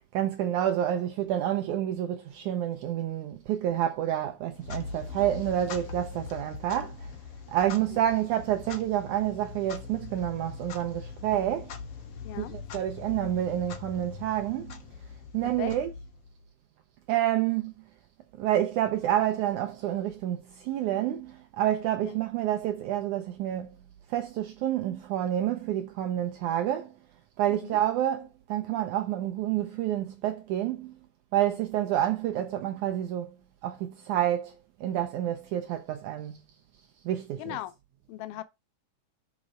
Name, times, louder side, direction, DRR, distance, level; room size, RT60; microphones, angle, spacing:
voice 1, 0.1-7.1 7.5-11.7 12.4-14.8 15.3-15.9 17.1-17.7 18.4-23.7 24.1-26.9 27.4-30.9 31.3-33.4 33.6-36.4 37.1-37.6, right 12 dB, 80° right, 1.8 m, -28 dB
Clock, 4.5-16.5, left 5 dB, 70° left, 1.4 m, -42 dB
voice 2, 12.2-12.6 15.4-15.7 22.0-22.2 27.5-27.8 37.4-37.7 38.1-38.4, left 14 dB, 85° left, 2.6 m, -39 dB
6.3 x 5.2 x 4.9 m
omnidirectional pair, 4.2 m